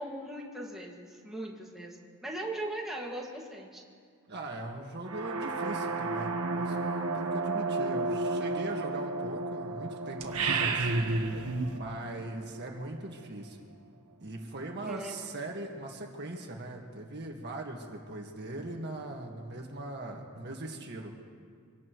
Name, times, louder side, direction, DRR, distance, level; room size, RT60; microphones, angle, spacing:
voice 1, 0.0-3.8 14.8-15.2, right 1 dB, ahead, -3 dB, 2.0 m, -39 dB
voice 2, 4.3-10.9 11.4-13.6 14.2-21.1, right 2 dB, 50° right, 1 dB, 1.7 m, -40 dB
sound 1, 5.0-12.9, right 3 dB, 70° right, 1.3 m, -34 dB
sound 2, 10.2-11.8, right 3 dB, 90° right, 1.4 m, -29 dB
25.5 x 18.0 x 3.1 m, 2.1 s
head